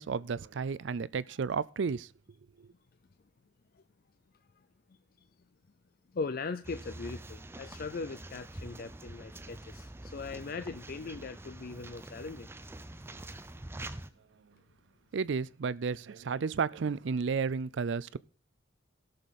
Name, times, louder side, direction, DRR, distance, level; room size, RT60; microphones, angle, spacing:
voice 1, 0.0-2.1 15.1-18.2, right 5 dB, 65° right, 0.4 m, -32 dB
voice 2, 6.1-12.5, left 4 dB, 50° left, 0.5 m, -39 dB
sound 1, 6.6-14.1, right 1 dB, 10° right, 0.6 m, -46 dB
17.0 x 6.7 x 4.1 m
head